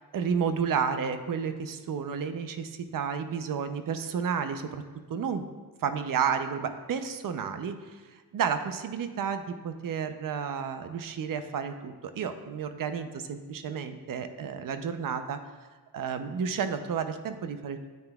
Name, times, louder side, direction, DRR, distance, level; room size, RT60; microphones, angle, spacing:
voice 1, 0.1-4.8 5.1-5.5 5.8-8.0 8.3-15.4 15.9-17.9, right 6 dB, 55° right, 9 dB, 0.6 m, -31 dB
9.3 x 8.9 x 2.3 m, 1.4 s
wide cardioid pair, 145°, 40 cm